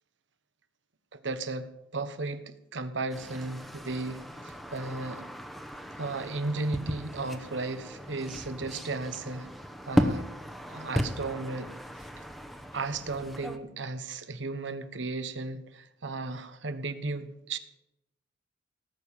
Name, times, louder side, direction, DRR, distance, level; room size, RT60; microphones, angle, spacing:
voice 1, 1.1-5.3 6.0-9.5 9.9-10.3 10.7-11.7 12.7-17.6, right 3 dB, 75° right, 10 dB, 1.2 m, -35 dB
sound 1, 3.1-13.6, equal, ahead, 1.0 m, -35 dB
18.0 x 6.9 x 7.3 m, 0.88 s
head